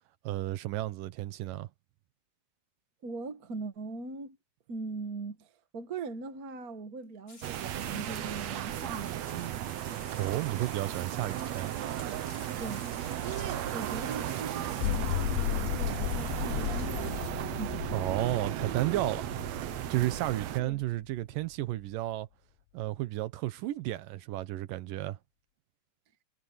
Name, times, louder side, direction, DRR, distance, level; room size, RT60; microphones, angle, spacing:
voice 1, 0.2-1.7 10.1-11.8 17.9-19.3 19.9-22.3 22.7-25.2, right 15 dB, 85° right, 2.7 m, -32 dB
voice 2, 3.0-4.4 4.7-9.6 12.6-17.9 20.6-20.8, right 4 dB, 45° right, 1.2 m, -41 dB
sound 1, 7.3-17.3, left 3 dB, 30° left, 5.5 m, -52 dB
sound 2, 7.4-20.6, right 12 dB, 65° right, 1.9 m, -35 dB
sound 3, 14.6-21.1, left 16 dB, 80° left, 1.8 m, -35 dB
omnidirectional pair, 3.8 m